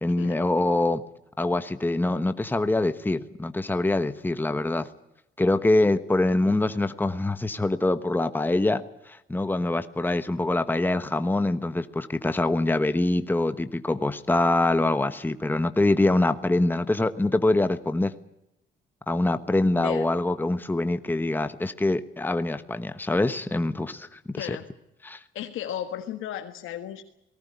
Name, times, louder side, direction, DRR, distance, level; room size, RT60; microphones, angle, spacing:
voice 1, 0.0-1.0 1.4-4.9 5.4-18.1 19.1-24.6 25.0-25.2, left 2 dB, 10° left, 10 dB, 1.2 m, -24 dB
voice 2, 19.7-20.1 24.4-24.7 25.3-27.0, left 10 dB, 85° left, 5 dB, 1.6 m, -34 dB
19.5 x 18.0 x 9.5 m, 0.86 s
cardioid pair, 90°, 20 cm